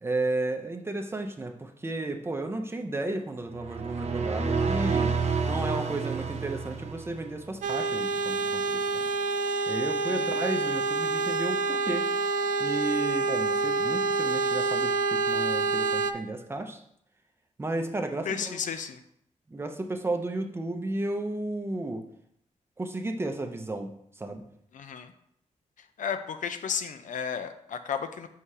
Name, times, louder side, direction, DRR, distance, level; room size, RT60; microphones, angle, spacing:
voice 1, 0.0-5.1 5.5-9.0 9.7-12.1 12.6-16.8 17.6-18.6 19.5-22.0 22.8-24.4, right 2 dB, 20° right, 4 dB, 0.6 m, -33 dB
sound 1, 3.5-7.4, right 5 dB, 60° right, 0.8 m, -29 dB
sound 2, 7.6-16.1, right 4 dB, 80° right, 0.4 m, -27 dB
voice 2, 10.0-10.4 18.2-19.0 24.7-25.1 26.0-28.3, left 7 dB, 80° left, 9 dB, 0.5 m, -33 dB
6.3 x 3.7 x 5.5 m, 0.72 s
wide cardioid pair, 175°, 13 cm